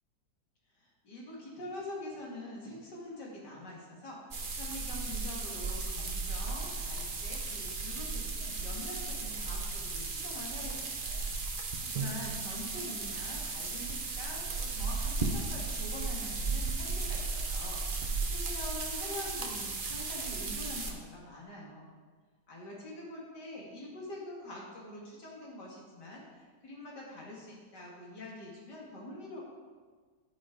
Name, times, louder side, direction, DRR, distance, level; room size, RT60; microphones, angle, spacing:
voice 1, 0.8-21.9 22.5-29.4, left 1 dB, 90° left, -3 dB, 2.9 m, -45 dB
sound 1, 4.3-20.9, right 3 dB, 40° right, 0.9 m, -35 dB
Drum, 11.9-14.6, right 5 dB, 80° right, 1.6 m, -43 dB
10.0 x 9.6 x 3.9 m, 1.5 s
omnidirectional pair, 1.8 m